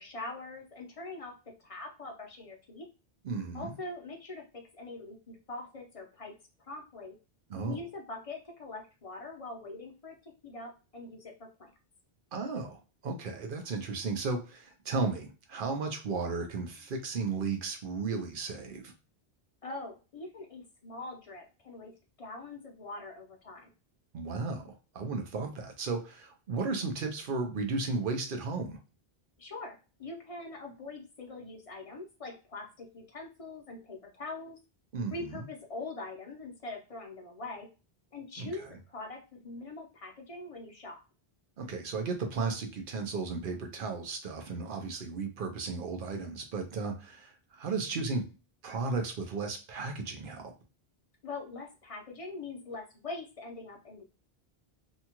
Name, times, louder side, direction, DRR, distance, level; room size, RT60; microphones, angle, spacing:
voice 1, 0.0-1.3 1.6-2.9 3.5-4.4 4.7-6.3 6.6-7.1 7.6-11.7 19.6-21.9 22.2-23.7 29.4-34.6 35.1-37.7 38.1-41.0 51.2-54.0, left 3 dB, 40° left, 1 dB, 0.6 m, -43 dB
voice 2, 3.2-3.7 7.5-7.8 12.3-18.9 24.1-28.8 34.9-35.4 38.4-38.5 41.6-48.2 48.6-50.5, right 4 dB, 60° right, 5 dB, 0.8 m, -34 dB
2.7 x 2.3 x 2.9 m, 0.32 s
omnidirectional pair, 1.1 m